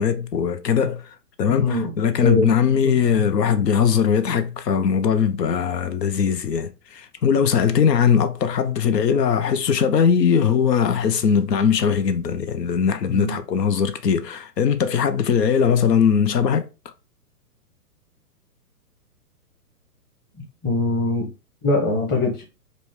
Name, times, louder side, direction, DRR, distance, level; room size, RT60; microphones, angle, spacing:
voice 1, 0.0-16.7, left 7 dB, 90° left, 0.6 m, -20 dB
voice 2, 1.5-1.9 2.2-2.5 2.8-2.9 13.1-13.4 20.6-21.3 21.6-22.4, left 2 dB, 20° left, 1.1 m, -22 dB
5.2 x 2.2 x 3.0 m
hypercardioid pair, 130°, 48 cm